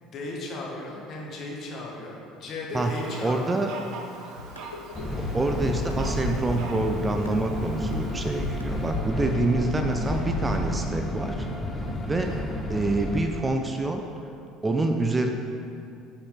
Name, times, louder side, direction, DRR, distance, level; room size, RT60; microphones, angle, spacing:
voice 1, 0.0-3.6 12.1-12.5, left 2 dB, 45° left, -2 dB, 1.6 m, -36 dB
Fowl, 2.7-9.2, right 3 dB, 60° right, 0.9 m, -43 dB
voice 2, 3.2-3.7 5.3-11.5 12.1-12.4 12.7-14.0 14.6-15.3, right 2 dB, 20° right, 4 dB, 0.6 m, -26 dB
sound 1, 4.4-7.5 7.9-10.6, left 3 dB, 90° left, 0.3 m, -38 dB
sound 2, 4.9-13.2, left 1 dB, 25° left, 1.1 m, -31 dB
10.5 x 5.1 x 3.8 m, 2.5 s
figure-of-eight pair, 60°, 0 cm